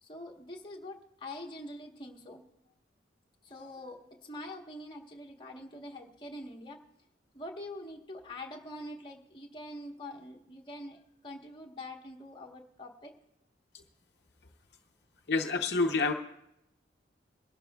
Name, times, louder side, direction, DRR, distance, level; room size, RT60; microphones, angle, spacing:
voice 1, 0.0-2.4 3.4-6.8 7.3-13.1 15.8-15.9, left 1 dB, 25° left, 0 dB, 1.2 m, -45 dB
voice 2, 15.3-16.1, left 3 dB, 65° left, 2 dB, 0.8 m, -27 dB
23.0 x 12.0 x 2.3 m, 0.81 s
head